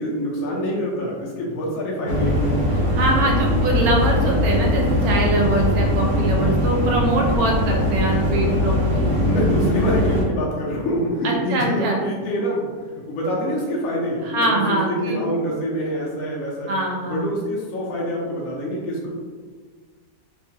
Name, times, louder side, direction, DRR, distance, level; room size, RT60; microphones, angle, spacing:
voice 1, 0.0-2.4 9.2-16.7 17.0-19.2, equal, 75° left, -4 dB, 1.0 m, -25 dB
sound 1, 2.1-10.2, left 1 dB, 65° right, 0.9 m, -21 dB
voice 2, 2.9-9.2 11.2-12.0 14.2-15.2 16.7-17.3, right 2 dB, 90° right, 0 dB, 1.1 m, -23 dB
2.9 x 2.3 x 2.7 m, 1.5 s
omnidirectional pair, 1.5 m